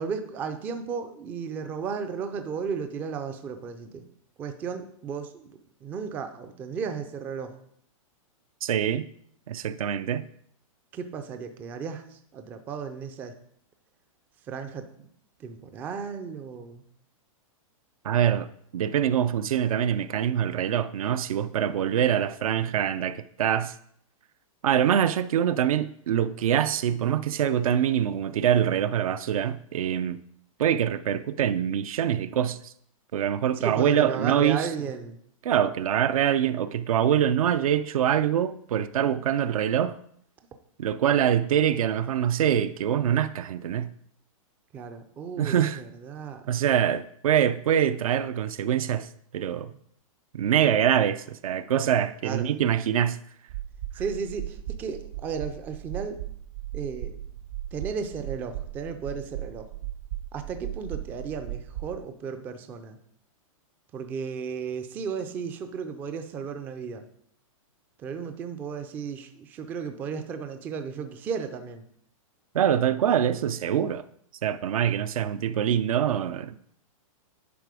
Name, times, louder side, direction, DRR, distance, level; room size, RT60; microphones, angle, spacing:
voice 1, 0.0-4.0 4.4-7.6 10.9-13.3 14.5-15.1 15.4-16.8 33.6-35.2 44.7-46.4 52.2-52.5 54.0-56.2 56.7-57.2 57.7-59.7 60.3-63.0 63.9-67.0 68.0-71.8, right 6 dB, 10° right, 0.3 m, -34 dB
voice 2, 8.6-9.1 9.5-10.2 18.0-18.5 18.7-23.7 24.6-30.2 30.6-32.7 33.1-34.7 35.4-40.0 40.8-43.9 45.4-45.8 46.5-49.1 49.3-49.7 50.3-53.2 72.5-74.0 74.4-76.6, right 9 dB, 80° right, 0.6 m, -24 dB
sound 1, 53.5-62.0, right 13 dB, 50° right, 0.8 m, -37 dB
10.5 x 4.0 x 4.8 m
hypercardioid pair, 165°, 18 cm